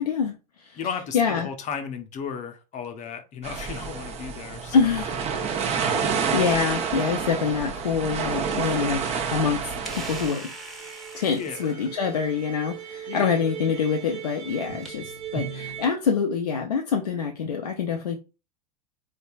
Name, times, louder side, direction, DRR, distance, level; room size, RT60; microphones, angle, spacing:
voice 1, 0.0-0.8 1.1-1.5 4.7-5.2 5.8-10.5 11.1-18.2, left 6 dB, 80° left, 0.6 m, -26 dB
voice 2, 0.7-4.7 6.1-6.4 11.3-11.8 13.1-13.3, left 6 dB, 35° left, 0.8 m, -35 dB
sound 1, 3.4-10.3, right 6 dB, 30° right, 0.9 m, -28 dB
sound 2, 8.1-14.9, right 1 dB, ahead, 1.1 m, -45 dB
sound 3, 9.2-15.9, right 8 dB, 60° right, 1.1 m, -39 dB
4.2 x 3.4 x 2.4 m
figure-of-eight pair, 85°, 20 cm